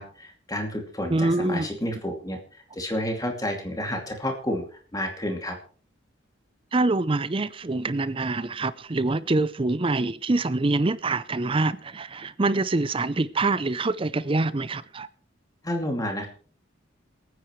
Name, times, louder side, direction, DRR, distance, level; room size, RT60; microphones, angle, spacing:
voice 1, 0.0-2.4 2.8-4.7 4.9-5.6 15.6-16.3, equal, 20° left, 2.5 m, -30 dB
voice 2, 1.1-1.8 6.7-15.1, right 2 dB, 25° right, 0.5 m, -25 dB
27.0 x 9.5 x 3.2 m
head